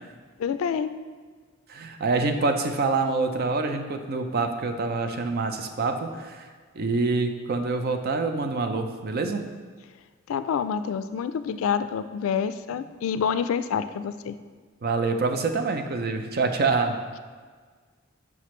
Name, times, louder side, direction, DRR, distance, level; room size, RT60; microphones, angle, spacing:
voice 1, 0.4-1.0 10.3-14.3, left 7 dB, 80° left, 12 dB, 0.3 m, -27 dB
voice 2, 1.7-6.5 6.7-9.5 14.8-17.2, right 3 dB, 50° right, 6 dB, 0.5 m, -26 dB
5.9 x 5.8 x 3.1 m, 1.5 s
head